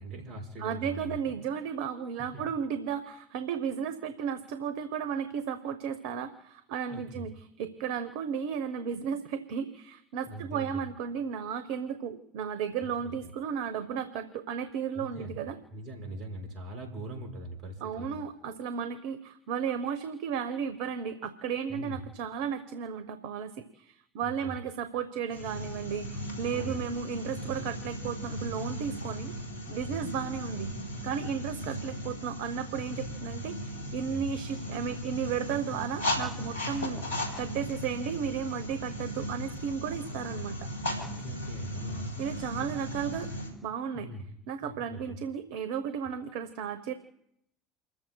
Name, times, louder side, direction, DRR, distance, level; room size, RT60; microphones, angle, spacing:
voice 1, 0.0-1.2 2.2-2.4 6.9-7.3 10.3-10.7 13.0-13.3 14.9-15.4 15.7-18.1 21.7-22.0 24.2-24.5 26.5-26.8 29.9-30.1 31.3-31.4 34.1-34.3 40.9-42.1 42.6-42.7 43.9-44.3 44.6-45.2, right 1 dB, 55° right, 2 dB, 5.3 m, -41 dB
voice 2, 0.6-15.6 17.8-29.3 29.7-30.7 31.0-37.0 37.4-40.7 42.2-43.3 43.6-44.1 44.5-46.9, right 7 dB, 70° right, 10 dB, 1.0 m, -34 dB
sound 1, 25.3-43.5, equal, 90° left, 3.8 m, -37 dB
30.0 x 14.5 x 2.3 m, 0.77 s
hypercardioid pair, 65°, 0 cm